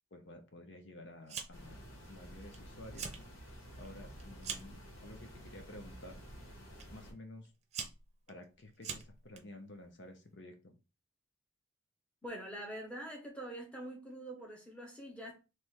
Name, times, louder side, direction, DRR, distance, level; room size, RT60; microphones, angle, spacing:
voice 1, 0.1-1.8 2.1-6.2 6.9-7.5 8.3-10.8, left 1 dB, 60° left, 0.7 m, -52 dB
Fire, 1.3-1.8 2.1-2.6 2.9-3.2 3.6-4.8 5.6-5.9 6.8-6.9 7.4-9.4, right 6 dB, 35° right, 0.7 m, -43 dB
sound 1, 1.5-7.1, equal, 90° left, 2.0 m, -51 dB
voice 2, 12.2-15.4, right 1 dB, 5° left, 1.0 m, -45 dB
3.4 x 3.1 x 4.4 m
head